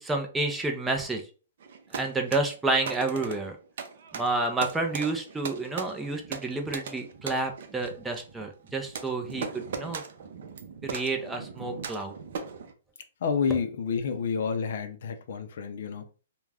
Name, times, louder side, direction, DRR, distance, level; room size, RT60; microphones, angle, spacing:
voice 1, 0.0-1.2 1.9-3.6 4.1-10.0 10.8-12.1, right 2 dB, 10° right, 0.5 m, -30 dB
sound 1, 1.6-12.7, right 5 dB, 60° right, 0.5 m, -39 dB
voice 2, 13.2-16.1, left 6 dB, 60° left, 0.5 m, -29 dB
2.4 x 2.2 x 3.3 m
hypercardioid pair, 145°, 0 cm